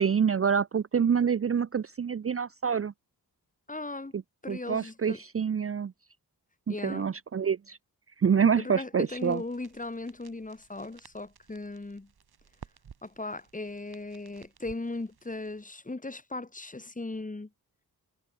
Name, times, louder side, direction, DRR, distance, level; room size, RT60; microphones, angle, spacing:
voice 1, 0.0-2.9 4.1-4.2 4.5-5.9 6.7-7.8 8.2-9.4, right 7 dB, 40° right, 0.6 m, -26 dB
voice 2, 3.7-4.1 4.4-5.2 6.7-7.1 8.5-12.1 13.0-17.5, left 2 dB, 20° left, 2.6 m, -37 dB
sound 1, 9.1-15.6, right 7 dB, 85° right, 4.5 m, -56 dB
wide cardioid pair, 105°, 37 cm